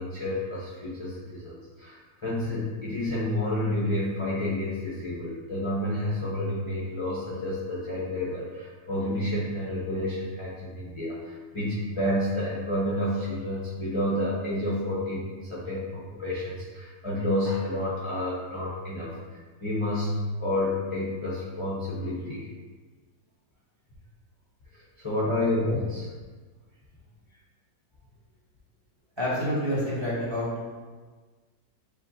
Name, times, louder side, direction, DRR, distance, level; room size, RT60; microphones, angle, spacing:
voice 1, 0.0-20.1 20.4-22.5 24.7-26.1, left 1 dB, 40° left, -8 dB, 0.4 m, -30 dB
voice 2, 29.2-30.5, equal, 20° right, -9 dB, 1.2 m, -28 dB
7.4 x 2.5 x 2.6 m, 1.4 s
omnidirectional pair, 1.7 m